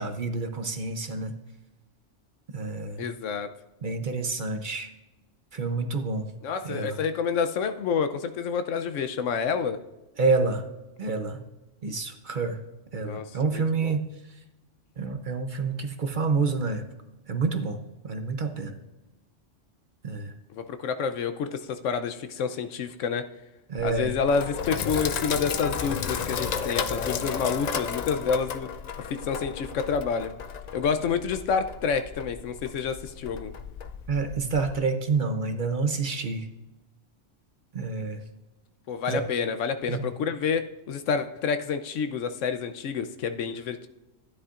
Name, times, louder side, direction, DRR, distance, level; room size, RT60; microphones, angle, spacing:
voice 1, 0.0-1.3 2.5-3.1 3.8-4.9 5.5-6.3 6.6-7.0 10.2-10.7 11.0-11.4 11.8-12.6 12.9-14.1 15.0-16.8 17.3-17.8 18.0-18.8 20.0-20.3 23.7-24.1 34.1-36.5 37.7-38.2 39.1-39.2 39.9-40.1, right 4 dB, 45° right, 6 dB, 0.8 m, -28 dB
voice 2, 3.0-3.5 6.4-9.8 13.0-14.0 20.5-23.3 23.8-28.7 29.1-30.3 30.7-33.5 38.9-43.9, left 6 dB, 80° left, 10 dB, 1.0 m, -28 dB
Sink (filling or washing), 23.8-34.8, left 6 dB, 60° left, 0.4 m, -33 dB
13.0 x 10.0 x 2.5 m, 1.0 s
omnidirectional pair, 1.3 m